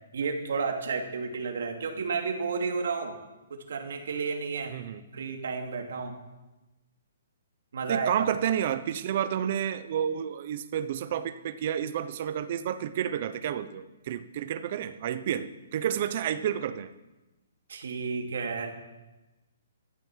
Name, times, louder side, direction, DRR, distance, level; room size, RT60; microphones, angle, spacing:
voice 1, 0.1-3.2 3.5-4.8 5.1-6.2 7.7-8.1 17.7-18.7, right 5 dB, 60° right, 3 dB, 2.7 m, -32 dB
voice 2, 4.7-5.0 7.9-16.9, right 9 dB, 35° right, 12 dB, 0.9 m, -30 dB
14.0 x 12.0 x 7.5 m, 1.1 s
hypercardioid pair, 175°, 0 cm